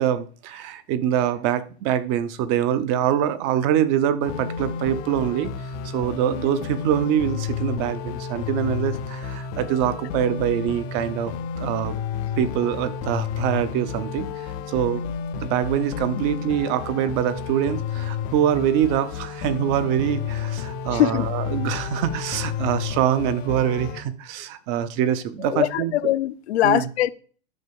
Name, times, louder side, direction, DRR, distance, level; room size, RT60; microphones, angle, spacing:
voice 1, 0.0-5.5 5.8-12.0 12.4-15.1 15.4-26.1 26.6-26.9, right 10 dB, 30° right, 0.6 m, -24 dB
sound 1, 4.2-24.0, left 7 dB, 20° left, 0.4 m, -31 dB
voice 2, 20.9-21.3 25.4-27.1, left 13 dB, 85° left, 0.9 m, -22 dB
9.8 x 5.5 x 7.0 m
supercardioid pair, 170°, 32 cm